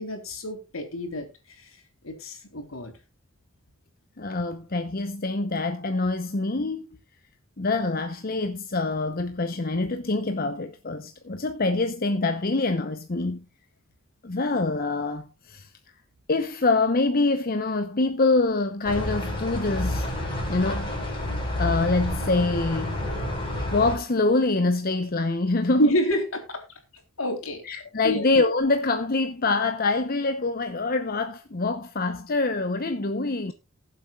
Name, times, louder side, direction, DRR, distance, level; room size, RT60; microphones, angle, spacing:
voice 1, 0.0-1.7 2.0-2.9 25.8-26.6 27.2-27.6 28.0-28.3, equal, 85° left, 3.4 m, -28 dB
voice 2, 4.2-6.9 7.6-13.4 14.2-15.7 16.3-20.1 20.5-20.9 21.6-23.0 23.7-25.9 27.6-33.5, left 3 dB, 45° left, 0.8 m, -25 dB
sound 1, 18.8-24.0, left 1 dB, 25° left, 5.7 m, -29 dB
20.5 x 7.7 x 2.4 m
head